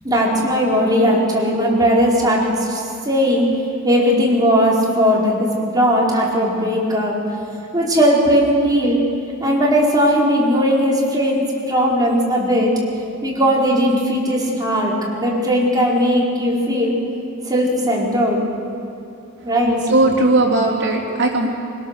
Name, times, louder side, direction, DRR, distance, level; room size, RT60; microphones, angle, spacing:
voice 1, 0.0-3.5 3.8-7.2 7.7-9.0 9.4-12.7 13.2-16.9 17.5-18.4 19.4-19.8, equal, 20° right, -4 dB, 4.6 m, -18 dB
voice 2, 19.9-21.5, right 2 dB, 60° right, -3 dB, 3.3 m, -17 dB
22.5 x 21.0 x 6.8 m, 2.7 s
head